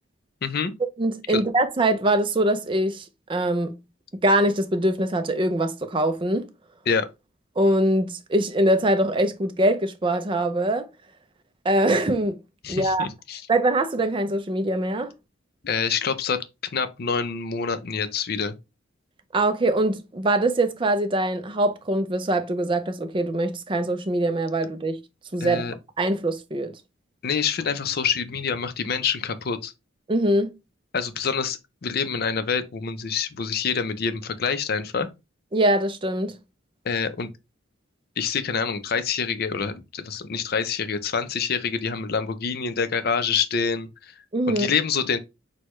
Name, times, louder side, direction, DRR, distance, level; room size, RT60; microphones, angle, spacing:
voice 1, 0.4-0.7 1.3-1.4 6.9-7.1 12.6-13.4 15.6-16.4 16.7-18.6 25.4-25.7 27.2-29.7 30.9-35.1 36.8-37.3 38.2-44.1 44.5-45.2, left 6 dB, 50° left, 0.5 m, -26 dB
voice 2, 1.0-3.0 3.3-3.7 4.1-6.5 7.6-10.9 11.6-12.4 12.7-13.1 13.5-15.1 19.3-25.0 25.3-26.7 30.1-30.5 35.5-36.3 44.3-44.7, right 1 dB, 25° right, 0.5 m, -23 dB
6.2 x 2.2 x 3.0 m
head